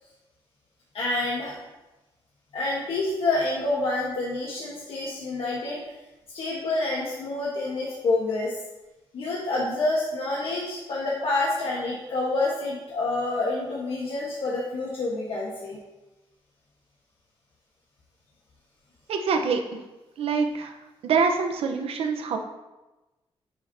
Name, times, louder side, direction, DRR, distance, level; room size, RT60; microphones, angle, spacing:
voice 1, 0.9-1.6 2.5-5.8 6.3-8.6 9.1-15.8, left 2 dB, 75° left, -5 dB, 1.3 m, -27 dB
voice 2, 19.1-19.6 20.2-20.7 21.0-22.4, right 5 dB, 85° right, 4 dB, 0.9 m, -25 dB
9.9 x 5.7 x 2.8 m, 1.1 s
wide cardioid pair, 150°, 10 cm